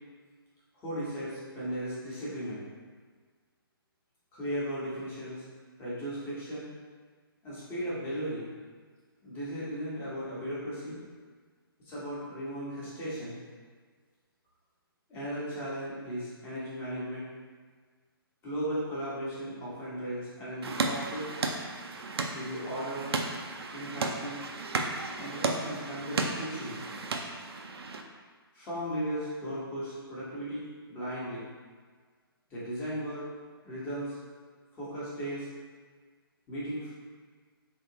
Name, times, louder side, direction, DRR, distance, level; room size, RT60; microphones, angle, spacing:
voice 1, 0.7-2.6 4.3-5.4 5.8-6.7 7.4-8.5 9.2-11.0 11.8-13.4 15.1-17.3 18.4-21.3 22.3-23.2 23.7-24.4 25.2-26.8 28.5-31.5 32.5-33.3 33.6-34.2 34.8-35.5 36.5-36.9, equal, 15° left, -9 dB, 1.1 m, -36 dB
sound 1, 20.6-28.0, right 3 dB, 85° right, 0.4 m, -34 dB
3.5 x 2.8 x 2.8 m, 1.5 s
hypercardioid pair, 150°, 13 cm